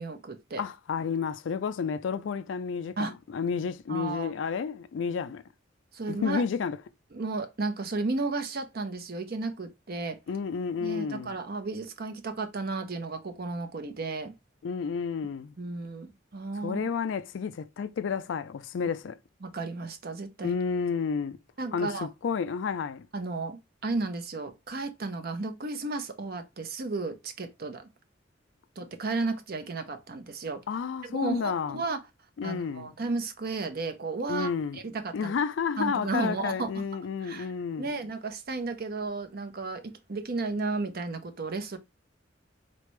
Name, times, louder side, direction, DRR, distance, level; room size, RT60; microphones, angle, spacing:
voice 1, 0.0-0.6 3.0-3.1 3.9-4.3 5.9-6.4 7.1-10.2 10.8-14.3 15.6-16.8 19.4-20.5 21.6-22.1 23.1-27.9 28.8-30.6 31.0-32.0 32.4-35.3 35.8-36.7 37.2-37.5 37.8-41.8, right 3 dB, 55° right, 0.7 m, -33 dB
voice 2, 0.6-5.4 6.1-6.8 10.3-11.3 14.6-15.5 16.6-19.2 20.4-21.4 21.7-23.1 30.7-31.8 32.4-32.9 34.3-34.8 35.1-37.9, left 6 dB, 75° left, 0.4 m, -31 dB
4.1 x 3.3 x 3.1 m
head